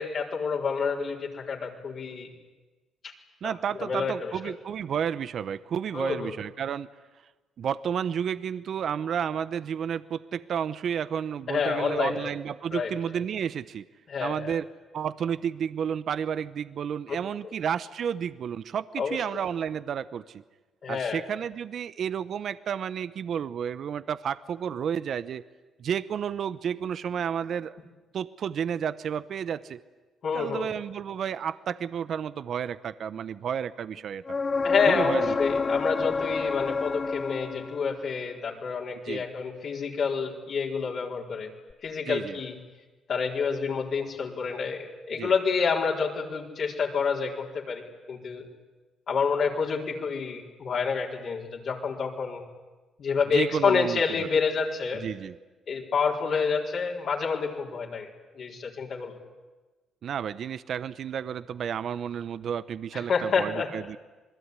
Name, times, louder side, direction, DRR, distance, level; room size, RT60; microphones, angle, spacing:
voice 1, 0.0-2.3 3.0-3.1 3.4-4.5 5.9-6.4 11.5-12.3 12.7-12.9 14.1-14.6 19.0-19.2 20.8-21.2 30.2-30.7 34.6-41.5 41.8-42.6 43.1-48.5 49.1-52.4 53.0-55.0 55.7-58.1 58.3-59.1 62.9-63.7, left 5 dB, 60° left, -1 dB, 4.4 m, -28 dB
voice 2, 3.4-6.9 7.6-13.8 14.2-14.7 14.9-20.4 20.9-25.4 25.8-27.8 28.1-29.8 30.3-34.4 34.9-35.3 39.1-39.2 42.0-42.4 45.1-45.3 53.3-54.3 54.9-55.3 60.0-64.0, right 8 dB, 60° right, 15 dB, 0.8 m, -31 dB
sound 1, 34.3-38.0 41.7-41.8, left 4 dB, 35° left, 0.8 m, -28 dB
27.0 x 20.5 x 9.8 m, 1.2 s
cardioid pair, 90°, 0 cm